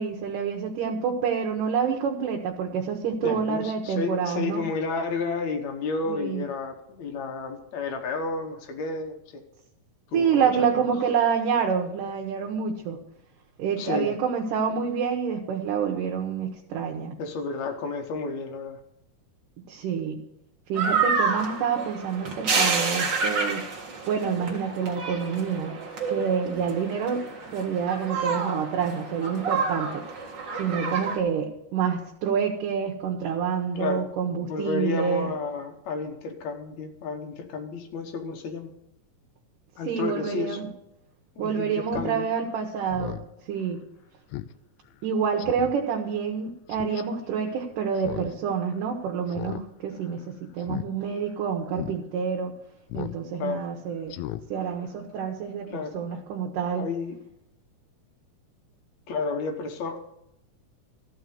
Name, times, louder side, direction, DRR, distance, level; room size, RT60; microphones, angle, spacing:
voice 1, 0.0-4.6 6.1-6.4 10.1-13.0 13.6-17.2 19.7-20.2 20.7-23.6 24.1-25.8 26.1-27.2 27.5-30.0 30.6-35.3 39.9-40.7 41.4-43.2 43.5-43.8 45.0-52.6 52.9-54.2 54.5-55.7 55.9-56.9, right 6 dB, 75° right, 1 dB, 2.6 m, -27 dB
voice 2, 3.2-9.4 10.1-10.9 13.8-14.2 14.7-14.8 17.2-18.8 30.7-31.0 33.8-34.1 34.4-38.7 39.8-40.6 41.4-42.3 53.4-53.7 55.7-56.2 56.8-57.2 59.1-60.0, left 4 dB, 65° left, 5 dB, 2.3 m, -31 dB
sound 1, 20.7-31.2, right 4 dB, 40° right, 1.9 m, -29 dB
Speech synthesizer, 41.9-42.1 42.5-42.6 42.9-43.3 43.7-43.8 44.3-44.5 44.9-45.0 45.4-45.7 46.7-47.0 48.0-48.3 48.6-48.7 49.3-49.6 49.9-50.2 50.6-50.9 51.3-51.4 51.7-52.0 52.9-53.2 53.5-53.6 54.1-54.4 54.8-54.9, left 14 dB, 85° left, 1.6 m, -36 dB
14.0 x 5.6 x 9.3 m, 0.84 s
omnidirectional pair, 3.9 m